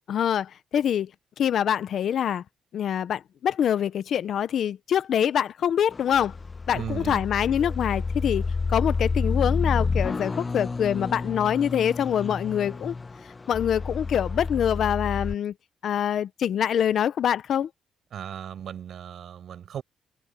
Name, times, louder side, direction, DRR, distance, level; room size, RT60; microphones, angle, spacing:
voice 1, 0.1-1.1 1.4-2.4 2.7-6.3 6.7-12.9 13.5-15.5 15.8-17.7, left 9 dB, 65° left, 0.7 m, -25 dB
sound 1, 5.9-15.3, left 4 dB, 25° left, 1.2 m, -29 dB
voice 2, 6.7-7.2 18.1-19.8, right 9 dB, 65° right, 6.1 m, -36 dB
cardioid pair, 120°, 0 cm